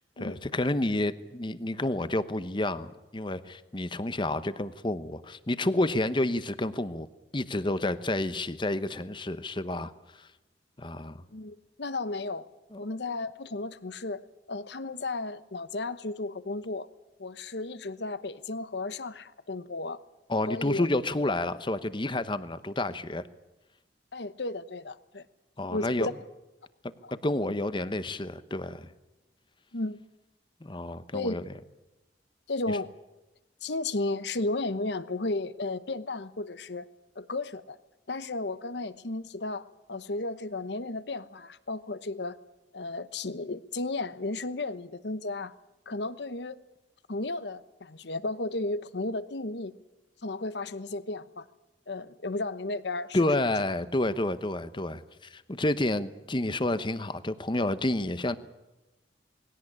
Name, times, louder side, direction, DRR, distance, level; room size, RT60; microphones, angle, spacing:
voice 1, 0.2-7.1 7.3-9.9 10.2-10.3 10.8-11.2 12.7-12.8 20.3-23.2 25.6-26.1 27.1-28.9 30.6-31.4 32.7-32.8 53.1-58.4, left 1 dB, 25° left, 13 dB, 1.0 m, -29 dB
voice 2, 11.3-12.5 12.8-14.2 14.5-16.9 17.2-20.0 20.5-20.9 24.1-25.2 25.7-26.1 27.0-27.1 29.7-30.0 31.1-31.4 32.5-32.9 33.6-36.9 37.2-37.8 38.1-42.4 42.7-45.5 45.9-46.6 47.1-49.7 50.2-51.5 51.9-53.5, left 2 dB, 70° left, 14 dB, 1.0 m, -34 dB
20.5 x 17.0 x 10.0 m, 1.0 s
head